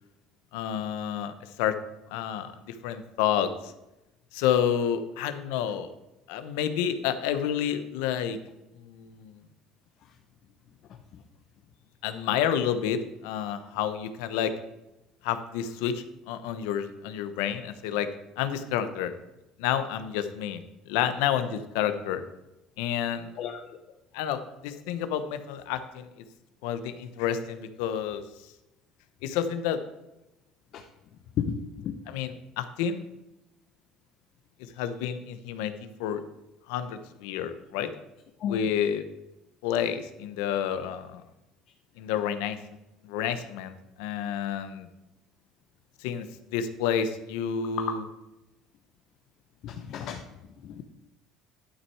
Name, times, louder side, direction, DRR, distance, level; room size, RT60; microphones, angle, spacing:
voice 1, 0.5-1.8 2.1-3.7 4.3-5.9 6.3-8.4 8.8-9.3 12.0-14.5 15.2-18.1 18.4-19.1 19.6-22.2 22.8-23.4 24.1-26.1 26.6-28.2 29.2-29.8 32.1-33.0 34.8-35.7 36.0-36.2 36.7-37.9 38.5-39.0 39.6-41.2 42.0-42.6 43.0-44.9 46.0-46.3 46.5-48.0, left 9 dB, 85° left, 11 dB, 0.9 m, -29 dB
voice 2, 31.4-31.9 38.4-38.6 49.6-50.2 50.6-50.8, left 8 dB, 60° left, 4 dB, 0.8 m, -32 dB
11.5 x 6.3 x 4.7 m, 0.94 s
supercardioid pair, 105°, 0 cm